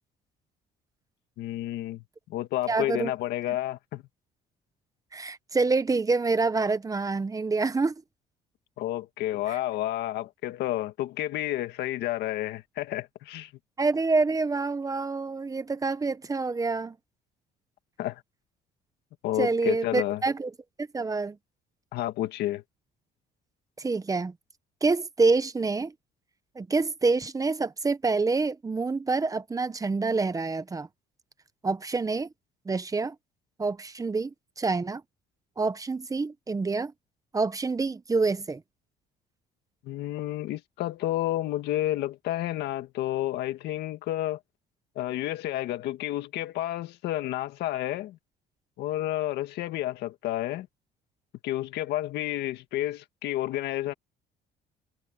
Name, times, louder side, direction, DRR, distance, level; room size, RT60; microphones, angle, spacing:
voice 1, 1.4-2.0 2.3-4.0 8.8-13.5 18.0-18.2 19.2-20.2 21.9-22.6 39.8-44.4 45.0-48.2 48.8-50.7 51.4-53.9, left 14 dB, 80° left, 1.9 m, -30 dB
voice 2, 2.7-3.1 3.5-3.6 5.1-7.9 9.5-9.6 13.8-17.0 19.4-20.5 20.8-21.4 23.8-24.3 24.8-25.9 26.5-30.9 31.6-32.3 32.7-33.1 33.6-35.0 35.6-36.9 37.3-38.6, right 3 dB, 20° right, 1.1 m, -27 dB
cardioid pair, 110°, 17 cm